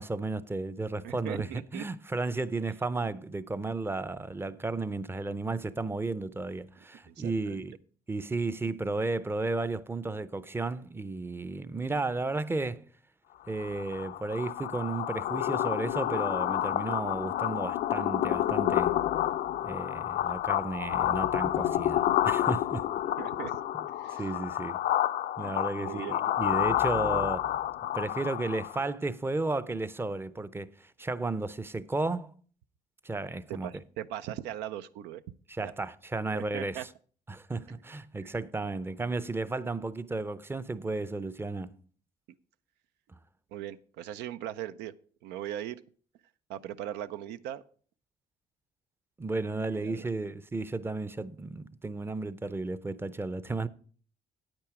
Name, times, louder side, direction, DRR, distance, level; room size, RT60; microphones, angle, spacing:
voice 1, 0.0-7.7 8.1-12.9 13.5-19.0 19.6-22.9 24.2-24.8 25.4-27.5 27.9-32.3 33.0-33.7 35.5-36.9 37.3-41.7 49.2-53.7, right 3 dB, 15° right, 0.5 m, -33 dB
voice 2, 1.0-1.9 7.1-7.6 23.2-23.6 24.0-24.3 25.4-26.2 33.5-35.2 35.6-35.7 36.3-36.9 38.2-38.3 43.5-44.9 45.2-45.8 46.5-47.6 49.7-50.1, right 11 dB, 90° right, 0.5 m, -39 dB
sound 1, 13.5-28.9, left 12 dB, 65° left, 0.5 m, -29 dB
8.9 x 8.7 x 4.8 m
cardioid pair, 110°, 17 cm